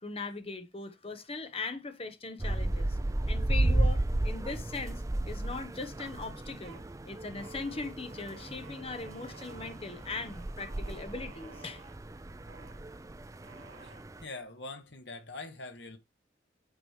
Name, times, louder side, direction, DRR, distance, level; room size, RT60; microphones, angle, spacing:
voice 1, 0.0-3.0 3.3-6.8 7.0-11.8, left 3 dB, 30° left, 1.0 m, -40 dB
sound 1, 2.4-14.2, right 1 dB, 15° right, 0.4 m, -33 dB
sound 2, 4.5-5.2 5.6-6.1 6.4-6.8 7.4-12.0 12.5-12.8 13.4-14.4, right 4 dB, 85° right, 1.3 m, -55 dB
voice 2, 14.2-16.0, left 3 dB, 70° left, 1.7 m, -43 dB
8.9 x 5.0 x 3.1 m
head